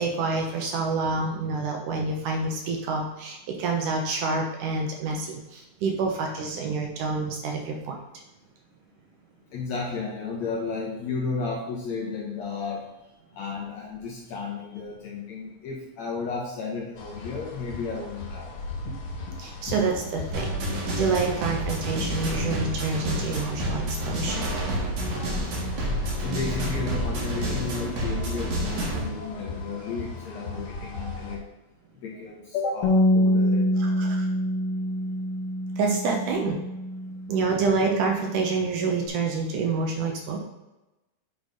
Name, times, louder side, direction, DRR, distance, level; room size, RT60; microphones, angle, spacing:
voice 1, 0.0-8.0 19.4-24.5 33.8-34.3 35.8-36.6 37.3-40.4, right 4 dB, 70° right, 1 dB, 2.2 m, -27 dB
voice 2, 9.5-12.9 13.3-18.6 18.9-19.0 19.3-19.4 19.7-19.8 26.2-31.4 32.0-34.1, left 4 dB, 70° left, -2 dB, 1.8 m, -33 dB
sound 1, 16.9-31.4, left 3 dB, 50° left, 2.9 m, -37 dB
sound 2, 20.3-29.1, right 1 dB, 55° right, 2.5 m, -29 dB
Bass guitar, 32.8-39.1, equal, 85° left, 2.7 m, -26 dB
8.4 x 4.0 x 5.2 m, 1.0 s
omnidirectional pair, 4.2 m